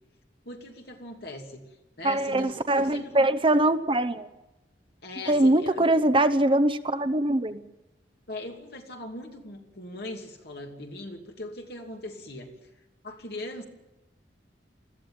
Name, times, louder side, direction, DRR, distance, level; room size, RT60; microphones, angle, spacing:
voice 1, 0.4-1.7 2.0-3.3 5.0-5.9 8.3-12.6 13.0-13.6, left 2 dB, 60° left, 2 dB, 2.6 m, -40 dB
voice 2, 2.0-4.3 5.3-7.6, right 1 dB, 30° right, 11 dB, 0.8 m, -23 dB
21.0 x 14.5 x 8.9 m, 1.0 s
head